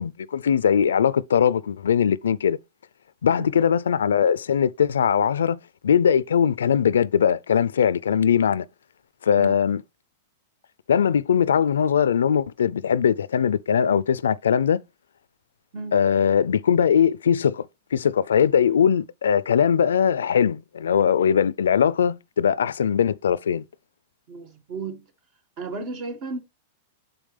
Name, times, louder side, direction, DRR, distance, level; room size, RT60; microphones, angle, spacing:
voice 1, 0.0-2.6 3.2-5.6 5.8-8.7 9.2-9.8 10.9-14.8 15.9-23.6, left 8 dB, 90° left, 0.4 m, -20 dB
voice 2, 24.3-25.1 25.6-26.4, right 3 dB, 45° right, 1.7 m, -33 dB
7.0 x 5.4 x 3.3 m
hypercardioid pair, 120°, 0 cm